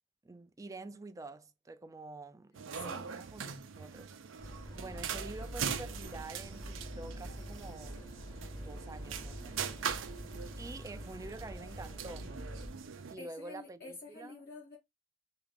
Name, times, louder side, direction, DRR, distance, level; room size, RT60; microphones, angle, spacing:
voice 1, 0.2-9.9 10.6-12.3 13.1-14.4, right 2 dB, 15° right, 0.3 m, -48 dB
sound 1, 2.5-13.2, right 7 dB, 85° right, 0.5 m, -42 dB
voice 2, 2.7-3.0 13.2-14.8, left 3 dB, 50° left, 0.8 m, -48 dB
sound 2, 4.4-12.7, equal, 20° left, 0.8 m, -46 dB
3.0 x 2.4 x 3.3 m
head